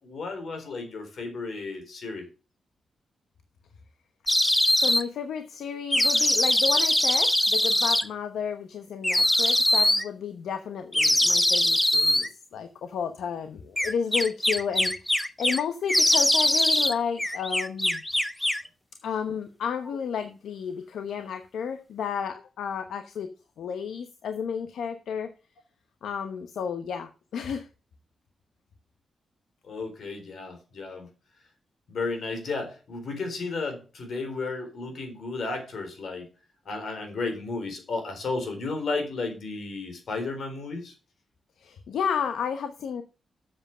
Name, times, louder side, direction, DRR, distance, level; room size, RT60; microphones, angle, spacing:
voice 1, 0.0-2.3 29.6-31.1 31.9-36.3 36.7-40.9, left 3 dB, 70° left, 5 dB, 4.0 m, -33 dB
sound 1, 4.3-5.0 5.9-8.0 9.0-10.0 10.9-12.3 13.8-15.6 15.9-16.9 17.2-18.7, left 1 dB, 10° left, 1.1 m, -22 dB
voice 2, 4.7-18.0 19.0-23.3 23.6-25.3 26.0-27.7 41.6-43.0, left 7 dB, 90° left, 8 dB, 0.9 m, -32 dB
7.9 x 7.3 x 6.7 m, 0.33 s
cardioid pair, 65°, 0 cm